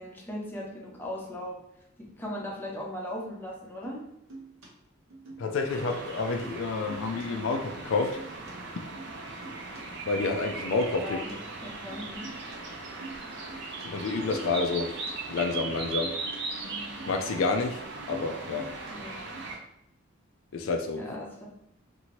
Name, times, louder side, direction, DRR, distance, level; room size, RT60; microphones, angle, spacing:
voice 1, 0.0-1.6 2.2-4.0 11.0-12.3 18.9-19.2 20.9-21.5, left 1 dB, 10° left, -2 dB, 0.6 m, -38 dB
sound 1, 3.8-4.0 4.3-4.7 5.1-5.9 6.2-6.6 6.9-7.3 7.7-8.5 8.9-9.1 9.4-9.8 11.3-11.4 11.9-12.6 12.8-13.9 14.3-15.1 15.4-17.6 17.9-18.9 19.3-19.4, right 3 dB, 90° right, 0.9 m, -45 dB
voice 2, 5.4-8.2 10.1-11.2 13.8-14.9 15.3-16.1 17.1-17.8 18.1-18.7 20.5-21.0, left 3 dB, 70° left, 4 dB, 0.3 m, -29 dB
sound 2, 5.7-19.6, right 3 dB, 60° right, 0.5 m, -39 dB
2.8 x 2.6 x 2.9 m, 0.79 s
head